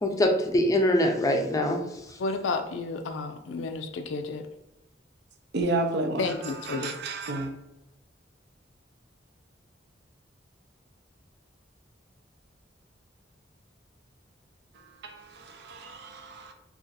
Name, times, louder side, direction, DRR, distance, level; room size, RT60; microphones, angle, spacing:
voice 1, 0.0-2.2, left 1 dB, 20° left, 0.4 m, -24 dB
voice 2, 2.2-4.4 6.2-6.9, left 3 dB, 85° left, 0.4 m, -31 dB
voice 3, 5.5-7.5 14.7-16.5, right 2 dB, 65° right, 0.5 m, -32 dB
2.5 x 2.4 x 3.9 m
head